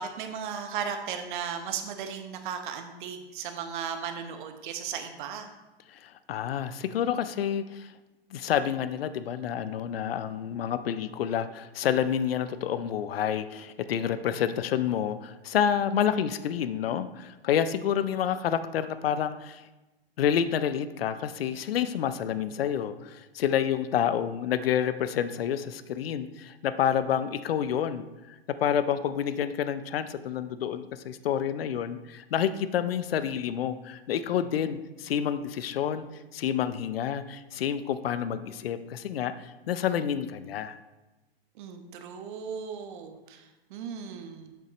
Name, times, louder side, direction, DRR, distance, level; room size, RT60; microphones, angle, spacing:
voice 1, 0.0-5.5 41.6-44.5, right 7 dB, 50° right, 6 dB, 1.0 m, -36 dB
voice 2, 5.9-7.9 8.3-19.7 20.2-36.0 36.3-40.8, left 9 dB, 70° left, 13 dB, 0.6 m, -29 dB
8.1 x 6.4 x 3.1 m, 1.1 s
hypercardioid pair, 110°, 31 cm